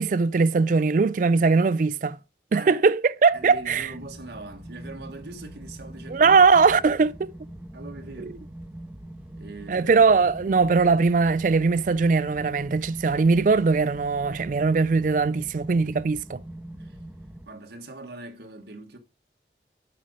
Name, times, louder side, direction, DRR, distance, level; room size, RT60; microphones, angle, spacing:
voice 1, 0.0-2.2 2.5-3.9 6.1-7.1 8.2-8.3 9.7-16.4, right 4 dB, 45° right, 0.3 m, -20 dB
voice 2, 2.5-2.8 3.3-6.4 6.7-6.8 7.7-8.4 9.3-10.0 16.8-17.0 17.4-19.0, right 2 dB, 70° right, 1.4 m, -41 dB
sound 1, 3.3-17.5, right 1 dB, 10° right, 1.2 m, -43 dB
8.7 x 5.2 x 5.1 m
head